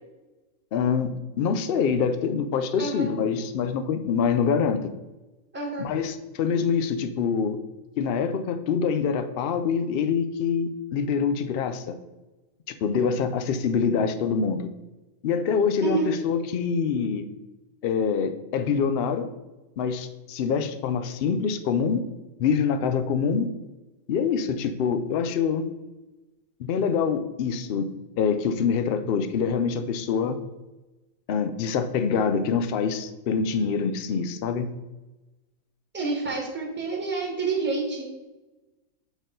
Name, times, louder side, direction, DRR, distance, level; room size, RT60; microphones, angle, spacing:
voice 1, 0.7-4.9 5.8-7.6 8.0-12.0 12.7-14.7 15.2-17.3 17.8-19.3 19.8-22.0 22.4-23.5 24.1-25.6 26.6-27.9 28.2-30.4 31.3-34.7, left 6 dB, 90° left, 9 dB, 0.5 m, -25 dB
voice 2, 2.8-3.1 5.5-5.9 15.8-16.1 35.9-38.2, right 3 dB, 10° right, -1 dB, 1.2 m, -28 dB
7.0 x 4.1 x 3.8 m, 1.1 s
omnidirectional pair, 1.6 m